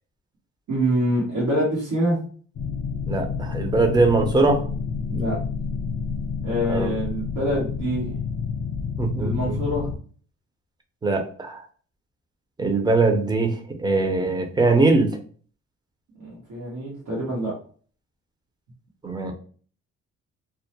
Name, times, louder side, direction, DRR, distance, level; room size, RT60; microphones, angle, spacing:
voice 1, 0.7-2.2 5.1-5.4 6.4-8.1 9.2-9.9 16.2-17.5, equal, 85° right, -6 dB, 1.0 m, -25 dB
sound 1, 2.5-10.0, left 5 dB, 50° left, 0.6 m, -29 dB
voice 2, 3.1-4.6 6.7-6.9 9.0-9.6 11.0-11.6 12.6-15.2 19.0-19.3, right 3 dB, 15° right, 4 dB, 0.5 m, -21 dB
2.2 x 2.0 x 2.8 m, 0.43 s
cardioid pair, 90°, 30 cm